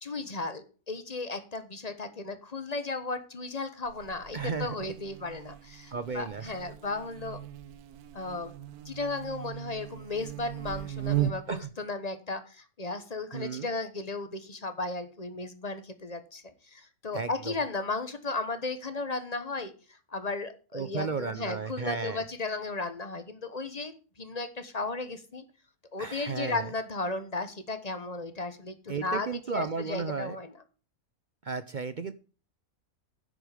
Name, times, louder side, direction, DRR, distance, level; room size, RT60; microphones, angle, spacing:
voice 1, 0.0-7.4 8.1-8.6 8.8-25.4 25.9-30.5, left 3 dB, 30° left, 11 dB, 1.1 m, -35 dB
Buzz, 3.8-11.6, right 12 dB, 85° right, 1.3 m, -37 dB
voice 2, 4.3-4.7 5.9-6.6 11.5-11.7 13.3-13.7 17.1-17.5 20.7-22.2 26.0-26.7 28.9-30.4 31.4-32.1, right 5 dB, 50° right, 12 dB, 0.6 m, -34 dB
10.5 x 7.6 x 5.0 m, 0.37 s
omnidirectional pair, 1.5 m